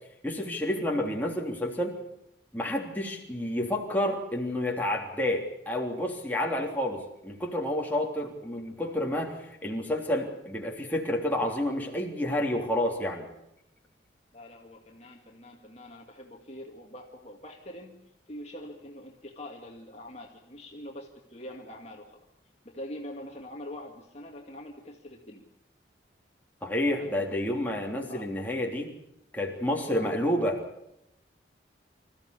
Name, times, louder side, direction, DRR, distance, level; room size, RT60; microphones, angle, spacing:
voice 1, 0.2-2.0 2.5-13.3 26.6-28.9 29.3-30.6, left 1 dB, 10° left, -1 dB, 3.4 m, -29 dB
voice 2, 14.3-22.2 22.6-25.5 27.0-27.3 28.1-28.3 29.9-30.3, left 1 dB, 35° left, 1 dB, 2.2 m, -44 dB
26.5 x 15.0 x 8.4 m, 0.83 s
head